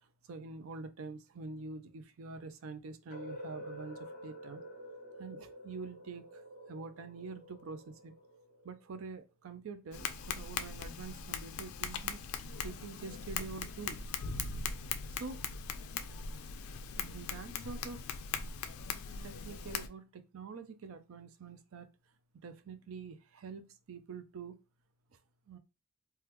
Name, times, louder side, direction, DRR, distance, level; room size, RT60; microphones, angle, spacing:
voice 1, 0.0-4.6 5.2-8.1 8.6-12.2 12.6-14.0 15.2-15.5 17.1-18.0 19.2-21.9 22.4-24.6 25.1-25.2 25.5-25.6, right 4 dB, 75° right, 0.4 m, -46 dB
sound 1, 3.1-9.0, equal, 50° left, 1.3 m, -49 dB
Tap, 9.9-19.9, left 6 dB, 85° left, 0.4 m, -40 dB
3.3 x 2.3 x 3.0 m
head